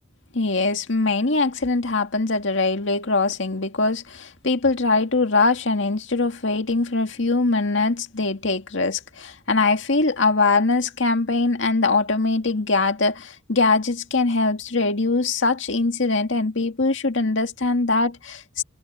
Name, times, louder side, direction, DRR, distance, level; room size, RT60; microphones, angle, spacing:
voice 1, 0.3-18.6, left 3 dB, 70° left, 2.0 m, -22 dB
head